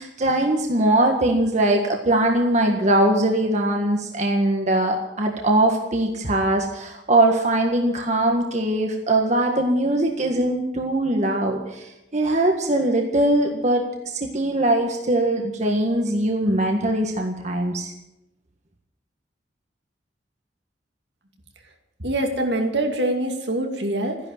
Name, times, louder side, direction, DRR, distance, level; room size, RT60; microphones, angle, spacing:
voice 1, 0.0-17.9, right 1 dB, 40° right, 2 dB, 1.8 m, -21 dB
voice 2, 22.0-24.2, right 1 dB, 70° right, 3 dB, 2.5 m, -24 dB
14.0 x 11.0 x 9.0 m, 0.94 s
head